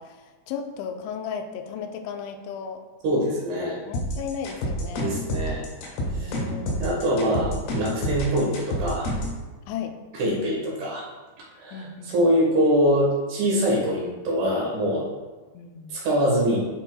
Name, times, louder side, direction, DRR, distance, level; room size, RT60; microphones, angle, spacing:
voice 1, 0.0-2.8 3.9-5.2 6.2-7.3 9.7-10.0 11.7-12.3 15.5-16.0, left 6 dB, 90° left, 5 dB, 3.0 m, -35 dB
voice 2, 3.0-3.8 4.9-5.6 6.1-6.4 6.8-9.1 10.1-11.0 11.6-15.1 15.9-16.6, equal, 70° right, -4 dB, 3.3 m, -24 dB
sound 1, 3.9-9.4, left 1 dB, 70° left, 3.4 m, -28 dB
10.5 x 5.4 x 2.3 m, 1.2 s
omnidirectional pair, 5.2 m